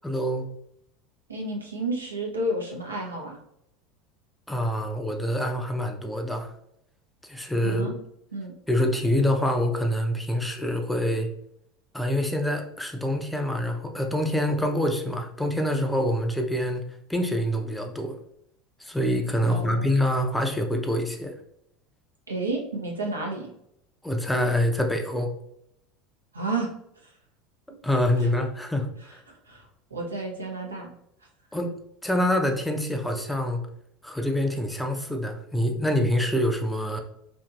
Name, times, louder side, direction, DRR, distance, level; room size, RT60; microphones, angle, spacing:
voice 1, 0.0-0.5 4.5-6.5 7.2-7.9 8.7-11.3 11.9-16.8 17.1-18.1 18.8-21.3 24.0-25.3 27.8-29.2 31.5-31.7 32.0-33.6 34.0-37.0, left 1 dB, 5° left, 3 dB, 0.5 m, -26 dB
voice 2, 1.3-3.4 7.6-7.9 8.3-8.5 19.5-20.0 22.3-23.5 26.3-26.7 28.2-28.3 29.3-29.7 29.9-30.9 31.5-31.7, right 2 dB, 85° right, 0 dB, 0.6 m, -31 dB
2.8 x 2.6 x 2.3 m, 0.75 s
figure-of-eight pair, 75°, 0 cm